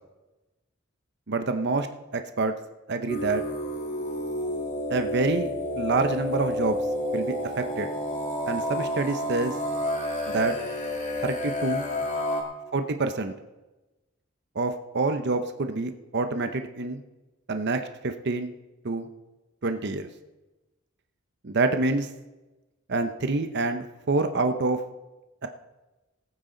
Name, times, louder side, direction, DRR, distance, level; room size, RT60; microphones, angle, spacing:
voice 1, 1.3-1.9 2.1-2.5 2.9-3.4 4.9-6.8 7.1-7.9 8.5-9.5 10.3-10.6 11.2-11.9 12.7-13.3 14.5-17.0 17.5-18.5 18.8-19.1 19.6-20.1 21.4-22.1 22.9-24.8 25.4-25.5, right 3 dB, 60° right, 8 dB, 0.8 m, -27 dB
sound 1, 3.1-12.4, left 1 dB, 35° left, 2.3 m, -30 dB
19.5 x 9.1 x 3.9 m, 1.1 s
head